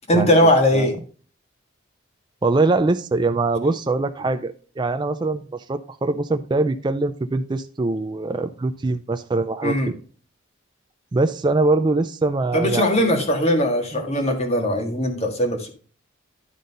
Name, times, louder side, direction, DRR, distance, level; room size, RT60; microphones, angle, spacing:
voice 1, 0.1-1.0 9.6-9.9 12.5-15.7, equal, 30° left, 4 dB, 1.7 m, -19 dB
voice 2, 2.4-9.9 11.1-13.2 13.9-14.0, right 3 dB, 20° right, 8 dB, 0.4 m, -23 dB
11.0 x 3.9 x 5.3 m, 0.41 s
head